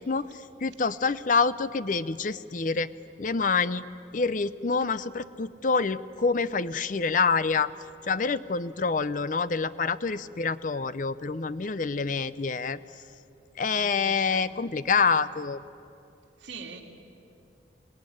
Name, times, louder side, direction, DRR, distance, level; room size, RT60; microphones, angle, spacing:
voice 1, 0.0-2.9 3.2-3.8 4.1-7.7 8.1-12.8 13.6-15.6, left 4 dB, 45° left, 15 dB, 0.6 m, -27 dB
voice 2, 13.7-14.5 16.4-16.8, right 5 dB, 75° right, 0 dB, 2.8 m, -43 dB
26.5 x 18.5 x 10.0 m, 2.8 s
head